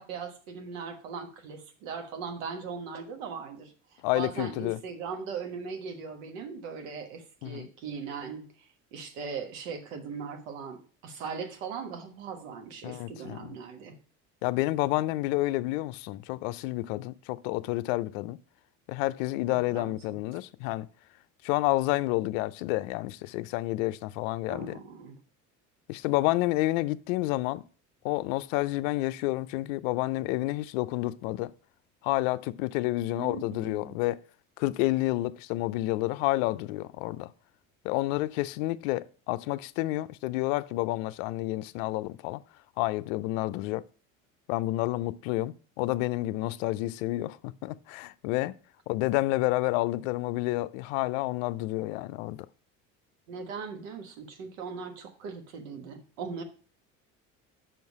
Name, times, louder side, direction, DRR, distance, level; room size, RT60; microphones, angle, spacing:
voice 1, 0.0-14.0 19.5-20.2 24.5-25.2 33.1-34.0 53.3-56.4, right 5 dB, 80° right, 1.3 m, -39 dB
voice 2, 4.0-4.8 7.4-7.7 12.8-13.4 14.4-18.4 18.9-20.9 21.4-24.7 25.9-27.6 28.0-31.5 32.0-34.2 34.6-37.3 37.8-42.4 42.8-43.8 44.5-47.4 47.6-48.5 48.9-52.5, left 18 dB, 75° left, 0.5 m, -29 dB
5.8 x 5.4 x 4.6 m
hypercardioid pair, 75°, 39 cm